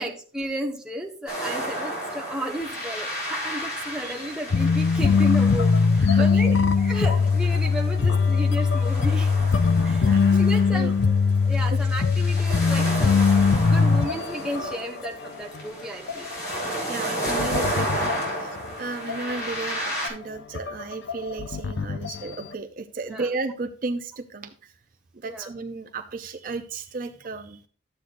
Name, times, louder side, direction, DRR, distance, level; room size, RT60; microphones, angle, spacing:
voice 1, 0.0-6.5 6.8-9.3 9.8-11.1 11.4-16.3 23.0-23.3 25.2-25.5, equal, 5° right, -1 dB, 1.1 m, -33 dB
sound 1, 1.3-20.1, right 1 dB, 50° left, 4.1 m, -33 dB
sound 2, 4.5-14.8 15.0-15.3 15.5-15.6 16.1-18.7 19.1-19.6 20.0-20.1 20.5-22.5, left 5 dB, 65° left, 0.5 m, -21 dB
voice 2, 6.0-6.6 10.0-10.4 10.7-10.9 16.9-18.5 18.8-24.7 25.2-27.6, right 3 dB, 45° right, 7 dB, 0.5 m, -34 dB
11.5 x 7.8 x 2.5 m, 0.41 s
head